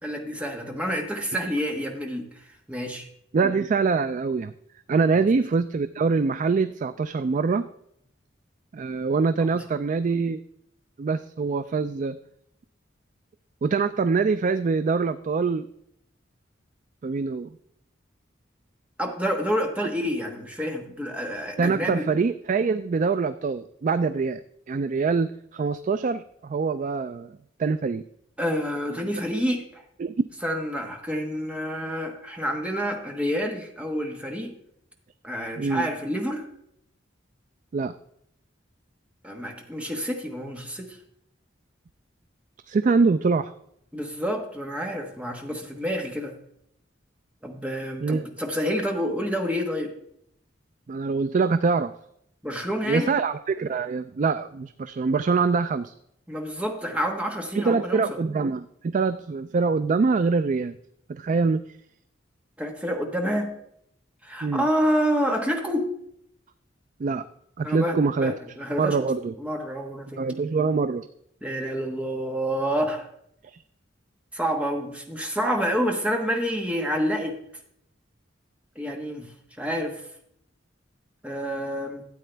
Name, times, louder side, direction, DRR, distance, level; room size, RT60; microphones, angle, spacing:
voice 1, 0.0-3.1 5.1-5.3 9.5-9.6 19.0-22.1 28.4-29.8 30.4-34.5 35.2-36.5 39.2-41.0 43.9-46.3 47.4-49.9 52.4-53.1 56.3-58.2 62.6-63.5 64.2-65.8 67.6-69.0 69.4-70.2 71.4-73.1 74.3-77.4 78.7-79.3 79.6-80.0 81.2-82.0, equal, 5° right, 2 dB, 1.3 m, -28 dB
voice 2, 3.3-4.5 4.9-7.7 8.7-10.4 11.0-12.2 13.6-15.7 17.0-17.5 21.6-24.4 24.7-27.3 27.6-28.0 30.0-30.1 35.6-35.9 37.7-37.9 42.7-43.5 48.0-48.2 50.9-51.9 52.9-55.9 57.6-60.8 61.1-61.6 64.4-64.7 67.0-67.2 67.6-68.3 68.8-69.3 70.2-71.1 73.4-73.6, right 4 dB, 40° right, 12 dB, 0.3 m, -24 dB
13.0 x 8.5 x 3.4 m, 0.73 s
head